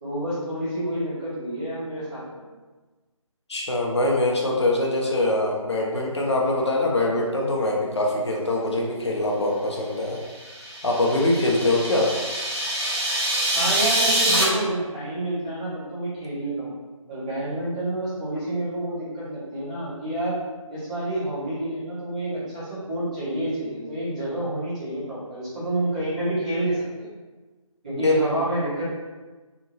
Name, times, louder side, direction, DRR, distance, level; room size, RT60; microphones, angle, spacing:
voice 1, 0.0-2.2 13.5-16.7 17.1-20.4 20.7-27.1 27.8-28.8, right 1 dB, 15° right, -12 dB, 0.7 m, -28 dB
voice 2, 3.5-10.2 10.8-12.1 28.0-28.1, left 2 dB, 50° left, -2 dB, 0.6 m, -23 dB
sound 1, 10.3-14.4, right 1 dB, 50° right, 0.8 m, -25 dB
2.6 x 2.6 x 2.9 m, 1.3 s
figure-of-eight pair, 160°, 18 cm